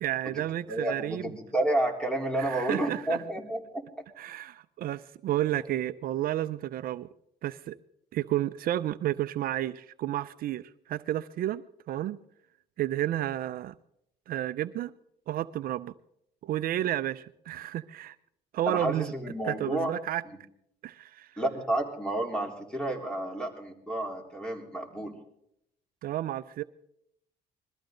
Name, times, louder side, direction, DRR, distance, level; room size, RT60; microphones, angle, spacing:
voice 1, 0.0-1.3 2.3-3.2 4.2-7.1 7.4-7.8 8.1-12.2 12.8-13.7 14.3-14.9 15.3-15.9 16.4-18.2 18.5-19.1 19.4-20.2 20.8-21.3 26.0-26.6, right 13 dB, 60° right, 0.5 m, -31 dB
voice 2, 0.7-3.8 18.7-19.9 20.3-20.4 21.4-25.1, right 1 dB, 5° left, 3.7 m, -31 dB
22.0 x 14.0 x 3.9 m
cardioid pair, 110°, 17 cm